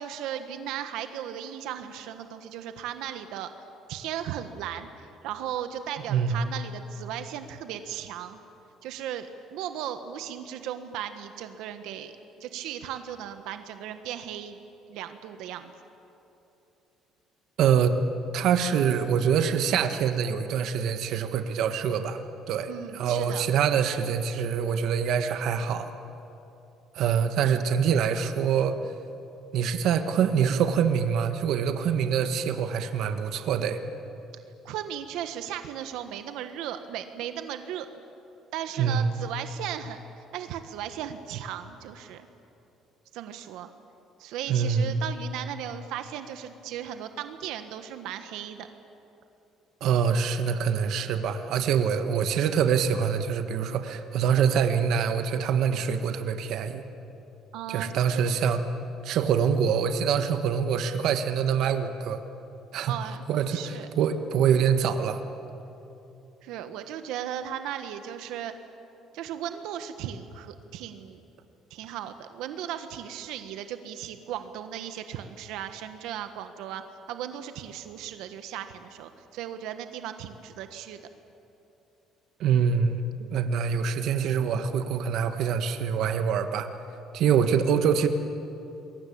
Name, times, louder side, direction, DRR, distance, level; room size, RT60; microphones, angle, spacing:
voice 1, 0.0-3.5 3.9-8.4 8.8-12.1 12.4-14.6 14.9-15.7 22.7-23.4 34.6-37.9 38.5-40.0 40.3-42.3 43.1-43.7 44.2-48.7 57.5-58.4 62.9-63.2 63.5-63.9 66.4-68.5 69.1-71.2 71.7-81.0, right 10 dB, 80° right, 8 dB, 1.4 m, -36 dB
voice 2, 6.1-6.4 17.6-18.0 18.3-25.9 26.9-28.8 29.5-33.8 38.8-39.1 44.5-45.1 49.8-56.8 57.7-58.6 59.0-62.2 62.7-62.9 63.3-65.2 82.4-83.0 83.3-86.7 87.1-88.1, right 7 dB, 60° right, 8 dB, 1.4 m, -25 dB
27.5 x 22.0 x 8.6 m, 2.9 s
cardioid pair, 155°, 0 cm